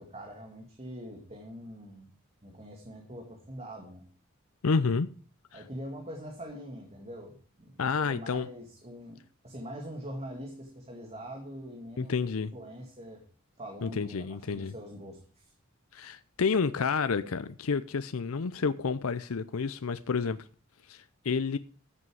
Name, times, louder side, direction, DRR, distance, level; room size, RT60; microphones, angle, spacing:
voice 1, 0.0-2.1 2.4-4.1 5.5-12.2 12.5-13.2 13.6-15.5, equal, 30° right, 2.3 m, -43 dB
voice 2, 4.6-5.1 5.5-5.6 7.8-8.5 12.0-12.5 13.8-14.7 15.9-20.5 20.9-21.6, left 5 dB, 80° left, 0.6 m, -30 dB
14.0 x 7.7 x 4.8 m
head